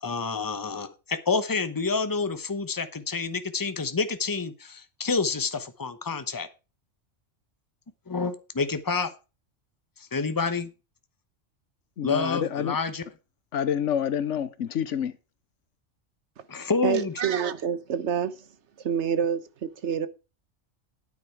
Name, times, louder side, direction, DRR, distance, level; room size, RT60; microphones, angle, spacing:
voice 1, 0.0-6.5 8.1-9.1 10.0-10.7 12.0-13.0 16.5-17.1, left 4 dB, 20° left, 0.9 m, -28 dB
voice 2, 12.0-12.8 13.5-15.1, left 9 dB, 80° left, 1.2 m, -27 dB
voice 3, 16.8-18.5 18.8-20.1, right 8 dB, 70° right, 1.2 m, -27 dB
9.8 x 8.6 x 4.6 m
omnidirectional pair, 1.2 m